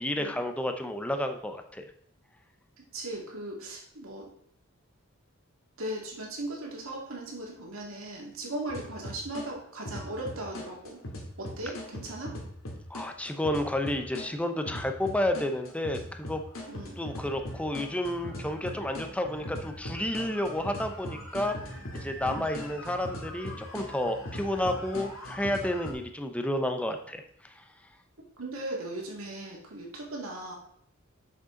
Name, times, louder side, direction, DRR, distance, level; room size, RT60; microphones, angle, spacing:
voice 1, 0.0-1.9 12.9-16.4 17.0-21.6 21.9-27.6, left 1 dB, 5° left, 6 dB, 0.7 m, -31 dB
voice 2, 2.9-4.3 5.8-11.0 11.4-12.4 16.7-17.0 22.3-22.5 28.4-30.5, right 1 dB, 85° right, -1 dB, 2.2 m, -38 dB
sound 1, 8.7-9.5 9.8-14.3 14.7-25.9, left 1 dB, 85° left, 2.1 m, -40 dB
7.6 x 6.7 x 3.8 m, 0.67 s
head